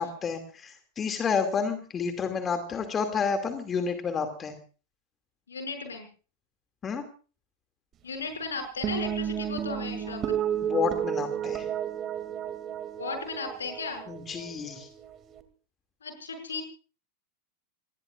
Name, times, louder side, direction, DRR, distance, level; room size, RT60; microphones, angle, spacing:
voice 1, 0.0-4.5 6.8-7.0 10.6-11.6 14.1-14.9, left 6 dB, 20° left, 7 dB, 2.5 m, -30 dB
voice 2, 5.5-6.1 8.0-10.4 13.0-14.0 16.0-16.6, left 4 dB, 70° left, 6 dB, 6.4 m, -35 dB
sound 1, 8.8-15.4, right 9 dB, 30° right, 2.5 m, -32 dB
27.5 x 20.0 x 2.5 m, 0.38 s
figure-of-eight pair, 90°, 0 cm